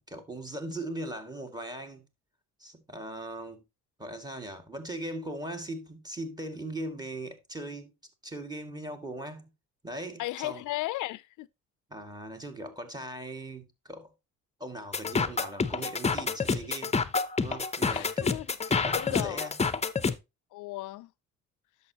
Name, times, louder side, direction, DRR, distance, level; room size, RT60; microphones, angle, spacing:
voice 1, 0.0-2.0 2.6-3.6 4.0-7.9 8.2-9.5 9.8-10.6 11.9-14.1 14.6-17.0 17.4-18.3 18.7-19.5, right 1 dB, 15° right, 2.2 m, -39 dB
voice 2, 10.2-11.5 17.9-18.6 18.9-19.5 20.5-21.1, left 17 dB, 80° left, 0.5 m, -35 dB
sound 1, 14.9-20.1, left 4 dB, 20° left, 0.7 m, -28 dB
10.5 x 7.0 x 2.9 m
cardioid pair, 90°, 30 cm